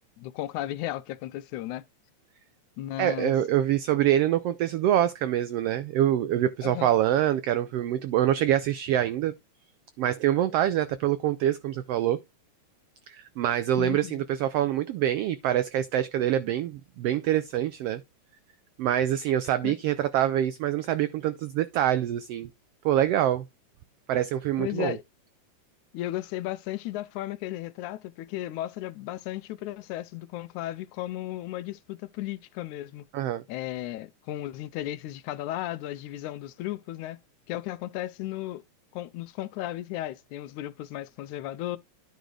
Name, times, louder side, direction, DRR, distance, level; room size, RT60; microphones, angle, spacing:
voice 1, 0.2-1.9 2.8-3.3 6.6-6.9 13.8-14.2 19.6-19.8 24.6-25.0 25.9-33.1 33.5-37.2 37.5-38.6 38.9-41.8, left 14 dB, 90° left, 2.1 m, -35 dB
voice 2, 3.0-9.3 10.0-12.2 13.1-18.0 18.8-22.5 22.8-23.4 24.1-25.0 33.1-33.4, right 11 dB, 85° right, 1.3 m, -25 dB
10.5 x 4.0 x 4.8 m
omnidirectional pair, 3.4 m